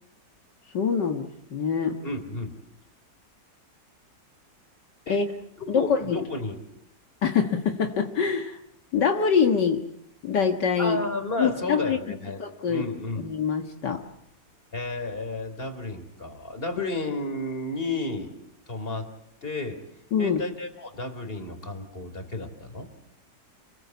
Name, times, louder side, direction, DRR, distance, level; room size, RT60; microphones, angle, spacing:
voice 1, 0.7-2.0 5.1-5.3 5.7-6.2 7.2-8.6 8.9-9.8 10.2-11.0 11.4-12.9 13.2-14.0 20.1-20.4, left 6 dB, 70° left, 4 dB, 2.2 m, -25 dB
voice 2, 2.0-2.6 5.1-5.2 5.6-6.6 10.8-13.3 14.7-18.3 18.7-19.1 19.4-19.8 20.2-22.9, left 2 dB, 30° left, 8 dB, 3.7 m, -32 dB
28.0 x 21.5 x 8.3 m, 0.76 s
omnidirectional pair, 1.9 m